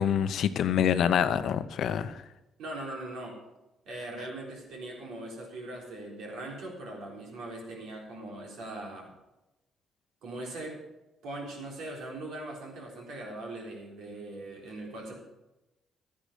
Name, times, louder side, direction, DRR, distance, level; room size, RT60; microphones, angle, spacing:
voice 1, 0.0-2.2, left 9 dB, 70° left, 12 dB, 0.8 m, -26 dB
voice 2, 2.6-3.4 3.9-9.1 10.2-10.8 11.2-15.1, right 2 dB, 80° right, -1 dB, 3.8 m, -40 dB
12.5 x 10.0 x 5.2 m, 0.97 s
cardioid pair, 90°, 0 cm